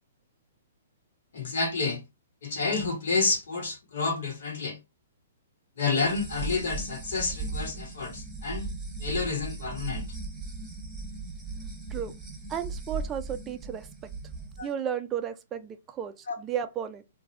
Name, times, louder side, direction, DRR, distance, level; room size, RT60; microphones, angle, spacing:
voice 1, 1.3-2.0 2.4-4.8 5.8-8.7 9.0-10.1 14.6-14.7 16.3-16.4, left 4 dB, 70° left, 1.5 m, -29 dB
sound 1, 6.0-14.6, right 3 dB, 5° right, 1.3 m, -37 dB
voice 2, 12.5-13.9 14.6-17.0, right 9 dB, 20° right, 0.4 m, -33 dB
2.6 x 2.3 x 3.1 m
hypercardioid pair, 135°, 0 cm